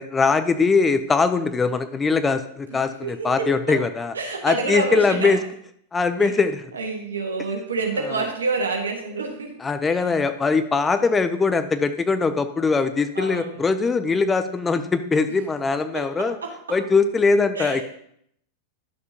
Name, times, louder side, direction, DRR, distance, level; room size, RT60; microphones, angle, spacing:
voice 1, 0.0-4.1 4.4-5.4 5.9-6.6 9.6-16.4 16.7-17.8, left 4 dB, 15° left, 10 dB, 0.5 m, -21 dB
voice 2, 2.7-3.8 4.1-5.4 6.2-6.3 6.7-10.2 13.1-13.7 15.9-16.8 17.5-17.8, right 3 dB, 70° right, 3 dB, 1.5 m, -28 dB
10.5 x 6.8 x 2.8 m, 0.70 s
figure-of-eight pair, 90°, 0 cm